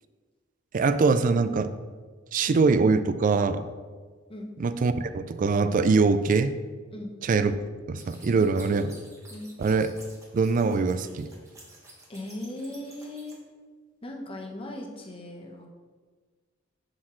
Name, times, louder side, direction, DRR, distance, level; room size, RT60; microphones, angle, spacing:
voice 1, 0.7-1.7 2.3-3.6 4.6-6.6 7.2-7.5 7.9-8.9 9.6-9.9 10.3-11.3, right 4 dB, 45° right, 12 dB, 0.4 m, -23 dB
sound 1, 7.9-13.3, right 2 dB, 15° right, 1.3 m, -51 dB
voice 2, 12.1-13.4 14.0-15.7, left 1 dB, 30° left, 1 dB, 0.9 m, -38 dB
7.3 x 6.4 x 3.1 m, 1.5 s
head